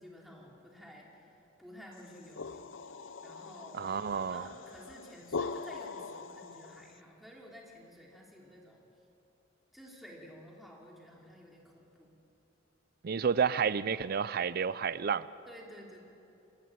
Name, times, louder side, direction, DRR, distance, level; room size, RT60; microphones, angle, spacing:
voice 1, 0.0-2.7 3.2-8.8 9.7-12.2 15.5-16.0, equal, ahead, -3 dB, 3.0 m, -52 dB
sound 1, 2.0-7.0, left 4 dB, 80° left, 0.7 m, -42 dB
voice 2, 3.7-4.5 13.0-15.3, right 6 dB, 50° right, 17 dB, 0.5 m, -30 dB
27.0 x 14.5 x 8.7 m, 2.8 s
head